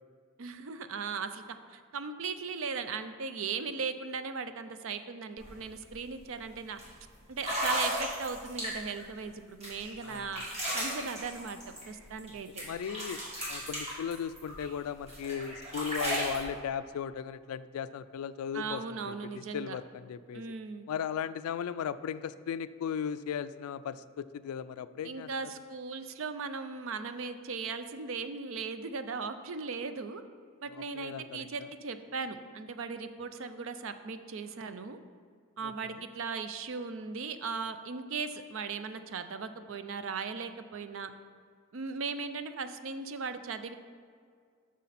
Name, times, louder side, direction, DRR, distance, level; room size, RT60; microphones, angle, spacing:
voice 1, 0.4-1.4 1.7-6.8 7.3-10.4 10.7-12.6 18.5-19.8 20.3-20.9 25.0-30.2 30.6-35.0 35.6-41.1 41.7-43.7, right 5 dB, 60° right, 10 dB, 0.5 m, -38 dB
sound 1, 5.4-5.5 5.9-6.2 6.8-6.9 7.4-9.0 9.6-12.3 12.6-14.7 15.1-16.4, equal, 30° right, 2.0 m, -35 dB
voice 2, 10.0-10.4 12.6-13.2 13.5-20.4 20.9-25.3 30.7-31.7 35.6-36.0, left 8 dB, 80° left, 15 dB, 0.3 m, -37 dB
8.4 x 6.2 x 4.1 m, 2.1 s
head